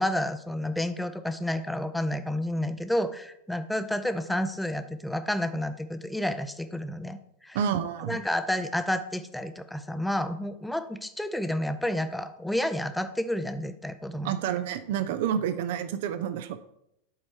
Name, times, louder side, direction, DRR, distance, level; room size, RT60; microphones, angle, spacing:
voice 1, 0.0-7.2 7.4-7.6 8.1-14.3, left 1 dB, 5° left, 10 dB, 0.5 m, -30 dB
voice 2, 7.5-8.2 14.2-16.6, right 9 dB, 50° right, 10 dB, 0.5 m, -29 dB
7.5 x 4.3 x 4.4 m, 0.77 s
figure-of-eight pair, 90°, 0 cm